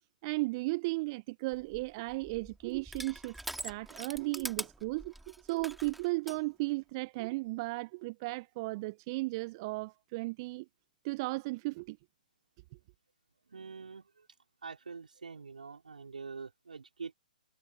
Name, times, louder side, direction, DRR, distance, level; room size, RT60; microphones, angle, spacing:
voice 1, 0.2-10.7 11.0-12.0, right 23 dB, 35° right, 0.6 m, -35 dB
Crushing, 1.5-6.4, right 1 dB, 5° right, 2.5 m, -44 dB
voice 2, 13.5-14.3 14.6-17.1, right 5 dB, 70° right, 4.6 m, -45 dB
figure-of-eight pair, 125°, 5 cm